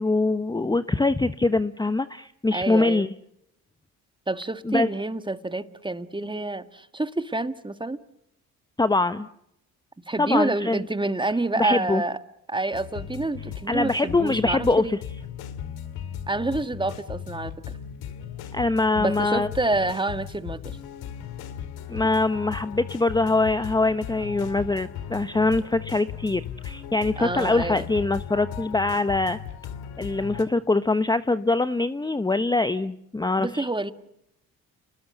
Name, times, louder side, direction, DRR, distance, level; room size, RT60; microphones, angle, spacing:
voice 1, 0.0-3.1 4.6-4.9 8.8-9.3 10.2-10.8 11.6-12.0 13.7-15.0 18.5-19.5 21.9-29.4 30.0-33.7, left 2 dB, 10° left, 12 dB, 0.9 m, -23 dB
voice 2, 2.5-3.1 4.3-8.0 10.0-12.2 12.5-15.0 16.3-17.5 19.0-20.8 27.2-27.9 33.4-33.9, right 2 dB, 15° right, 11 dB, 1.8 m, -28 dB
sound 1, 12.7-30.4, left 9 dB, 80° left, 2.5 m, -37 dB
29.5 x 20.5 x 8.0 m, 0.80 s
supercardioid pair, 65°, 37 cm